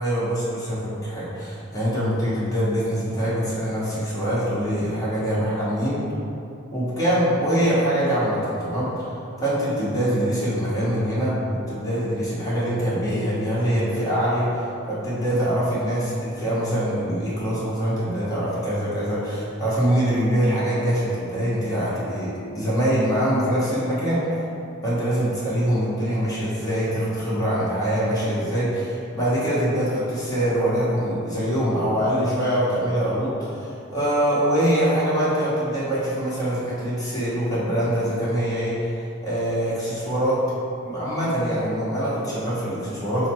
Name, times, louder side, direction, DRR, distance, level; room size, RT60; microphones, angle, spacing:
voice 1, 0.0-6.0 6.7-9.0 9.4-24.2 24.8-38.9 39.2-40.4 40.8-43.3, equal, 15° left, -10 dB, 1.1 m, -24 dB
4.1 x 2.0 x 4.4 m, 2.6 s
head